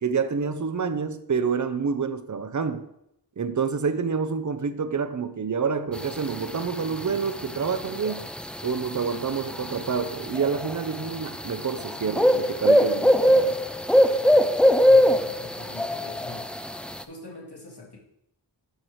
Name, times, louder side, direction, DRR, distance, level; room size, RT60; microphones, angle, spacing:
voice 1, 0.0-2.9 3.4-8.3 8.6-13.6, right 5 dB, 40° right, 0.6 m, -28 dB
sound 1, 6.0-17.0, equal, 5° left, 0.3 m, -22 dB
voice 2, 14.6-16.5 17.1-18.0, left 3 dB, 55° left, 2.0 m, -43 dB
11.0 x 4.5 x 3.2 m
wide cardioid pair, 45°, 45 cm